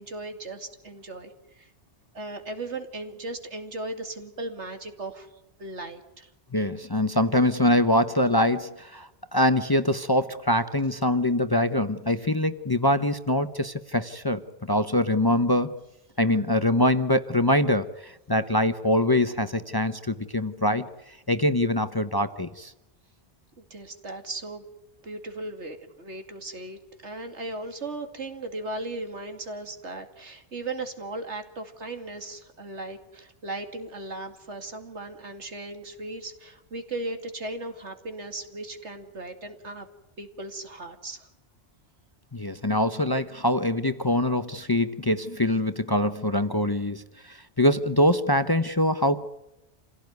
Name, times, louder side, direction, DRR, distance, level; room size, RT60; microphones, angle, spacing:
voice 1, 0.0-1.7 2.1-5.3 5.6-6.3 23.7-24.7 25.0-39.9 40.2-41.3, right 2 dB, 80° right, 6 dB, 2.8 m, -37 dB
voice 2, 6.5-14.4 14.7-15.7 16.2-20.8 21.3-22.7 42.3-49.3, left 1 dB, 20° left, 11 dB, 0.8 m, -24 dB
27.5 x 17.0 x 9.4 m, 0.98 s
omnidirectional pair, 1.2 m